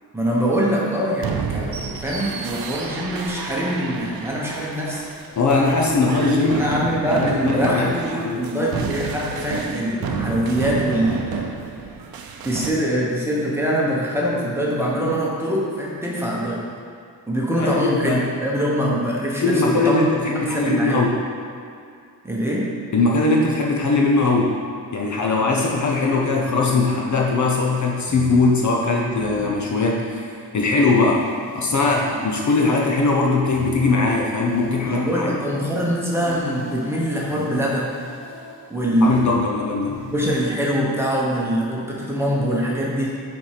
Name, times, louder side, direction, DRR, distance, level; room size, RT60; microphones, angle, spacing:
voice 1, 0.1-5.1 6.5-11.5 12.4-16.6 17.3-20.1 20.5-21.1 22.2-22.7 34.8-38.0 38.7-39.4 40.1-43.2, equal, 5° right, -5 dB, 1.1 m, -23 dB
sound 1, 1.2-12.7, right 6 dB, 65° right, 0.6 m, -30 dB
voice 2, 5.4-6.7 7.2-7.9 8.2-8.4 17.6-18.2 19.4-21.1 22.9-24.6 24.9-31.3 31.5-35.3 39.0-40.1, left 3 dB, 50° left, -1 dB, 0.7 m, -20 dB
sound 2, 25.4-27.2 28.1-30.0 30.8-35.3 36.2-40.7, left 3 dB, 80° left, 1.7 m, -38 dB
6.9 x 4.4 x 4.9 m, 2.4 s
wide cardioid pair, 165°, 39 cm